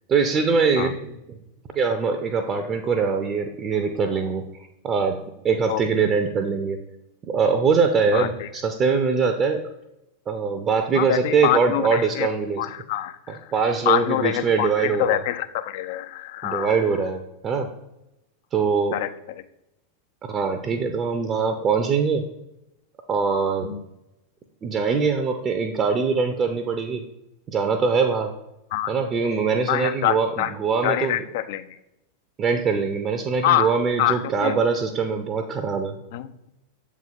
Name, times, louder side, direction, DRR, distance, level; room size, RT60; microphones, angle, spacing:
voice 1, 0.1-1.4 1.7-4.5 4.8-6.8 7.3-9.6 10.3-12.6 13.5-15.2 16.4-17.7 18.5-19.0 20.2-22.2 23.1-23.7 24.6-27.0 27.5-28.3 28.9-31.2 32.4-36.0, right 5 dB, 25° right, 6 dB, 0.5 m, -23 dB
voice 2, 8.1-8.5 10.9-12.3 12.6-13.5 13.9-16.8 18.9-19.1 23.6-23.8 28.7-28.9 29.7-30.5 30.8-31.6 33.4-33.7 34.0-34.6 36.1-36.3, left 13 dB, 50° left, 13 dB, 0.3 m, -25 dB
7.3 x 3.7 x 3.6 m, 0.91 s
figure-of-eight pair, 90°, 0 cm